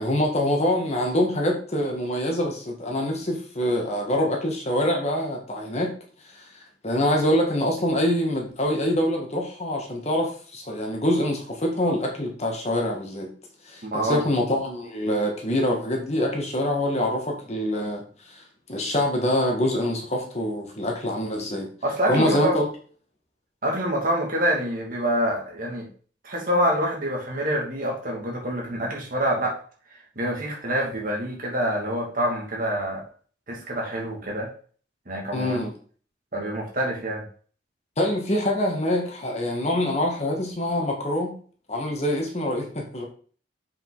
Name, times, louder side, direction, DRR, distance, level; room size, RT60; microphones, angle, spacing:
voice 1, 0.0-6.0 6.3-13.3 13.6-18.4 18.7-21.7 22.1-22.7 35.3-35.7 38.0-41.3 41.7-43.0, left 1 dB, 35° left, 1 dB, 1.8 m, -25 dB
voice 2, 13.8-14.2 21.8-22.6 23.6-25.9 26.2-29.6 30.2-33.0 33.5-34.5 35.1-35.6 36.3-37.2, equal, 50° right, -1 dB, 2.5 m, -26 dB
7.3 x 5.5 x 4.1 m, 0.43 s
head